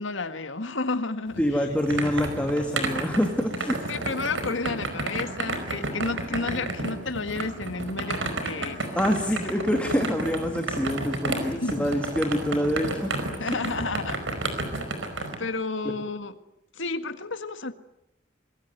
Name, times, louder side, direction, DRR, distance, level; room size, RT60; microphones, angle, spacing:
voice 1, 0.0-1.4 2.0-2.5 3.9-9.0 11.4-11.9 13.4-14.2 15.4-16.3 16.7-17.7, left 3 dB, 75° left, 9 dB, 1.8 m, -31 dB
sound 1, 1.3-15.3, right 2 dB, 75° right, 4.9 m, -32 dB
voice 2, 1.4-3.8 9.0-13.1 13.4-13.6, equal, 5° left, 4 dB, 2.2 m, -26 dB
25.5 x 21.5 x 9.3 m, 0.82 s
head